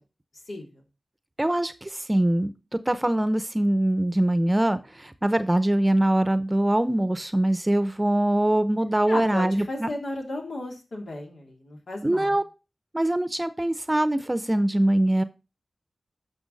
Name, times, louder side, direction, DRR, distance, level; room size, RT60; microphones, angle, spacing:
voice 1, 1.4-9.9 12.0-12.4 12.9-15.2, right 1 dB, 20° right, 13 dB, 0.7 m, -23 dB
voice 2, 9.1-12.4, left 1 dB, 85° left, 0 dB, 3.1 m, -34 dB
10.5 x 5.8 x 4.0 m, 0.29 s
wide cardioid pair, 60°, 0 cm